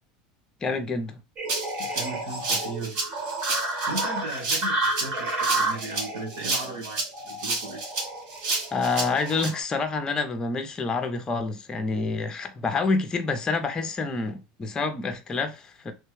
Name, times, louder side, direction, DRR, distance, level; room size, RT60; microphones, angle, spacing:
voice 1, 0.6-1.2 8.7-15.9, left 4 dB, 20° left, 0.6 m, -27 dB
sound 1, 1.4-9.6, right 2 dB, 35° right, 1.4 m, -31 dB
Rattle (instrument), 1.5-9.5, right 3 dB, 55° right, 1.5 m, -30 dB
voice 2, 1.8-3.1 3.9-7.8, right 2 dB, 75° right, 1.6 m, -36 dB
3.3 x 2.2 x 3.1 m
supercardioid pair, 130°, 4 cm